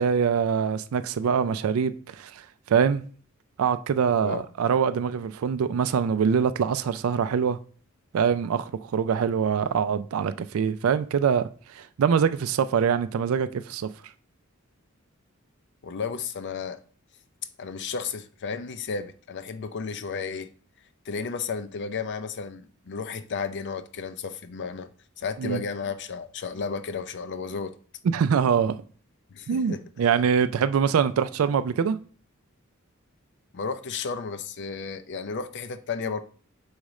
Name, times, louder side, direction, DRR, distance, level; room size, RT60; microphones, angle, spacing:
voice 1, 0.0-3.0 3.6-7.6 8.1-13.9 25.4-25.6 28.1-28.8 29.5-32.0, right 7 dB, 75° right, 0.3 m, -24 dB
voice 2, 15.8-16.8 17.6-20.5 21.1-24.9 25.2-27.7 29.3-29.8 33.5-36.2, left 5 dB, 55° left, 0.5 m, -33 dB
6.3 x 4.9 x 3.1 m
head